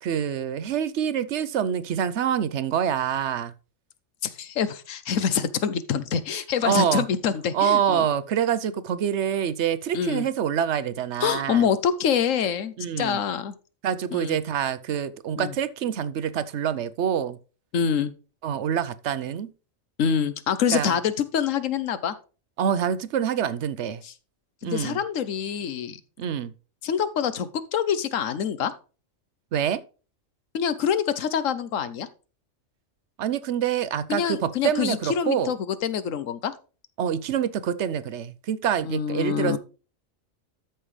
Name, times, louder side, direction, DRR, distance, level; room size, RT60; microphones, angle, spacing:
voice 1, 0.0-3.5 6.3-7.1 7.5-11.7 12.8-13.2 13.8-17.4 18.4-19.5 20.7-20.9 22.6-24.0 24.6-25.0 26.2-26.5 29.5-29.8 33.2-35.5 37.0-39.6, right 9 dB, 65° right, 1.0 m, -26 dB
voice 2, 4.2-8.1 9.9-10.3 11.2-13.5 14.1-14.4 15.4-15.5 17.7-18.1 20.0-22.1 24.0-24.1 24.6-26.0 26.8-28.7 30.5-32.1 34.1-36.5 38.8-39.6, left 7 dB, 75° left, 1.2 m, -26 dB
13.0 x 5.6 x 3.2 m
omnidirectional pair, 1.4 m